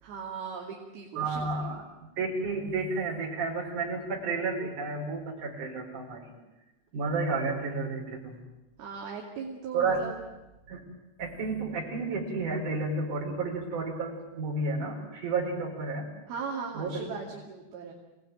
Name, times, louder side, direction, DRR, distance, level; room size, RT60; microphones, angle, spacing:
voice 1, 0.0-1.8 8.8-10.2 16.3-17.9, right 5 dB, 65° right, -1 dB, 4.3 m, -38 dB
voice 2, 1.2-6.3 6.9-8.3 9.7-10.0 10.7-10.8 11.2-16.1 16.7-17.0, right 3 dB, 45° right, -1 dB, 6.2 m, -31 dB
26.5 x 18.5 x 9.3 m, 1.0 s
omnidirectional pair, 5.0 m